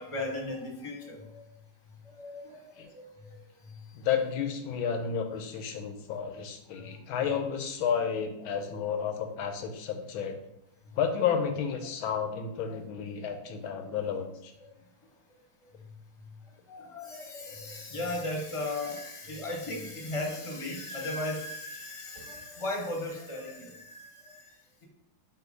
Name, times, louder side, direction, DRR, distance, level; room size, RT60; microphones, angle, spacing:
voice 1, 0.0-1.4 2.0-3.8 6.7-6.9 10.9-11.0 12.7-12.8 16.7-24.8, left 2 dB, 20° left, 0 dB, 1.0 m, -37 dB
voice 2, 3.9-10.4 10.9-14.5, left 7 dB, 90° left, 6 dB, 1.6 m, -31 dB
4.6 x 4.4 x 5.3 m, 0.78 s
omnidirectional pair, 2.2 m